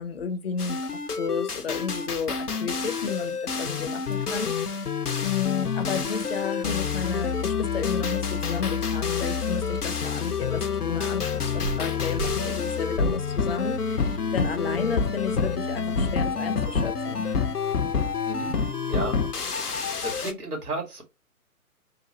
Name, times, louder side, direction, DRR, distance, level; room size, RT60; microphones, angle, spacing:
voice 1, 0.0-4.8 5.2-17.2, left 6 dB, 45° left, 0.6 m, -32 dB
sound 1, 0.6-20.3, left 5 dB, 90° left, 0.7 m, -28 dB
sound 2, 4.1-4.5 6.2-6.3 6.5-6.6 7.0-8.8 9.1-9.2 9.9-13.7 14.3-14.5 15.1-15.2, right 8 dB, 45° right, 2.1 m, -40 dB
voice 2, 18.2-18.6 18.9-19.6 20.0-21.0, right 2 dB, 85° right, 2.1 m, -33 dB
3.8 x 2.5 x 4.2 m
figure-of-eight pair, 130°, 44 cm